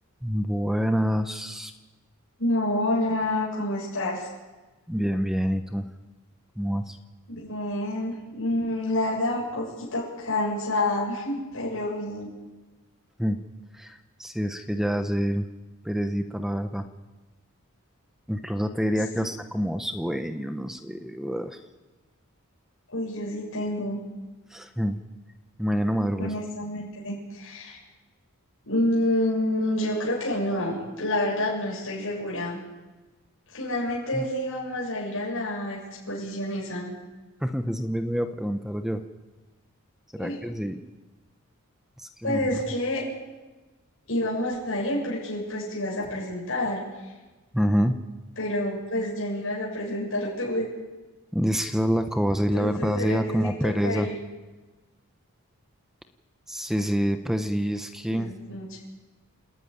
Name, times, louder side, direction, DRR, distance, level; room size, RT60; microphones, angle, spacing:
voice 1, 0.2-1.7 4.9-5.8 6.6-7.0 13.2-13.4 13.7-15.5 15.8-16.8 18.3-21.6 24.5-25.0 25.6-26.3 34.1-34.3 37.4-39.0 40.1-40.8 42.0-42.4 47.5-48.0 51.3-54.1 56.5-58.3, equal, ahead, 7 dB, 0.9 m, -27 dB
voice 2, 2.4-4.3 7.3-12.3 19.2-19.3 22.9-24.0 26.2-27.8 28.6-32.6 33.5-35.8 36.1-36.9 40.2-40.4 42.2-43.0 44.1-46.8 48.4-50.7 52.5-54.1 58.1-58.8, left 1 dB, 65° left, -4 dB, 7.5 m, -28 dB
28.5 x 13.0 x 9.7 m, 1.2 s
head